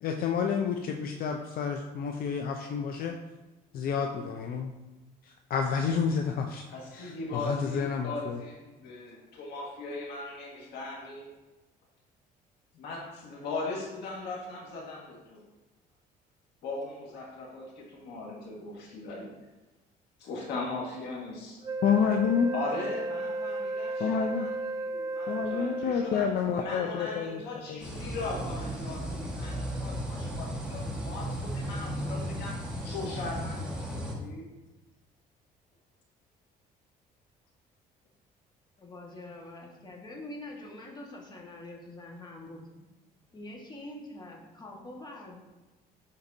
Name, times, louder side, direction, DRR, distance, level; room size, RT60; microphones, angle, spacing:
voice 1, 0.0-3.1 3.7-4.7 5.3-6.6 6.9-8.4 21.8-22.5 24.0-24.5 25.3-27.9, left 6 dB, 60° left, 3 dB, 0.5 m, -29 dB
voice 2, 6.7-11.3 12.7-15.4 16.6-19.3 20.2-21.6 22.5-24.5 24.9-26.3 26.6-32.5 32.8-34.5, left 3 dB, 80° left, -2 dB, 1.7 m, -39 dB
Wind instrument woodwind instrument, 21.6-26.4, right 2 dB, 20° right, 0.3 m, -34 dB
sound 1, 27.8-34.1, equal, 5° right, 1.5 m, -35 dB
voice 3, 38.8-42.9 43.3-45.4, left 1 dB, 25° left, -1 dB, 1.6 m, -45 dB
10.5 x 4.0 x 2.7 m, 1.1 s
cardioid pair, 110°, 17 cm